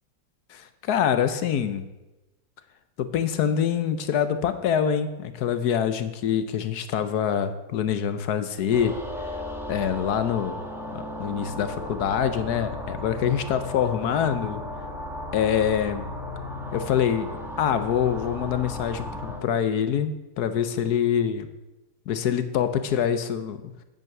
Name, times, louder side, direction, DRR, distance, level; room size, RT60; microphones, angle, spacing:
voice 1, 0.5-1.9 3.0-9.0 9.3-9.4 9.7-10.6 10.9-14.6 15.3-16.1 16.7-17.3 17.6-21.5 22.1-23.6, left 8 dB, 70° left, 11 dB, 1.2 m, -25 dB
sound 1, 8.7-19.4, left 1 dB, ahead, 1.0 m, -35 dB
9.2 x 9.0 x 5.9 m, 1.0 s
omnidirectional pair, 1.8 m